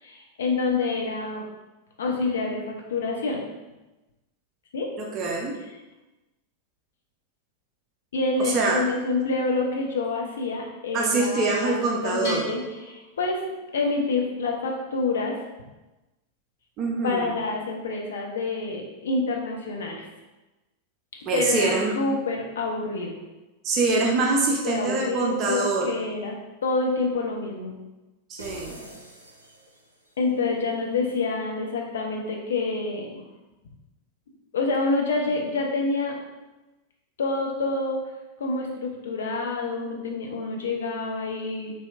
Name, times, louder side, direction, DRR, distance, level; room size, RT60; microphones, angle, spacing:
voice 1, 0.0-1.4 2.0-3.4 4.7-4.9 8.1-11.8 12.0-13.4 13.7-15.4 17.0-20.1 21.3-21.7 21.9-23.2 24.6-27.8 30.2-33.2 34.5-36.1 37.2-38.0 38.4-41.7, left 3 dB, 65° left, 0 dB, 0.6 m, -27 dB
voice 2, 5.0-5.5 8.4-8.8 10.9-12.4 16.8-17.3 21.3-21.9 23.6-25.9 28.3-28.8, right 3 dB, 35° right, -1 dB, 0.5 m, -24 dB
Bell, 12.2-14.0, left 1 dB, 50° left, 1.3 m, -39 dB
sound 1, 28.4-30.2, right 1 dB, 85° right, 0.5 m, -44 dB
4.3 x 2.7 x 2.3 m, 1.1 s
figure-of-eight pair, 90°, 0 cm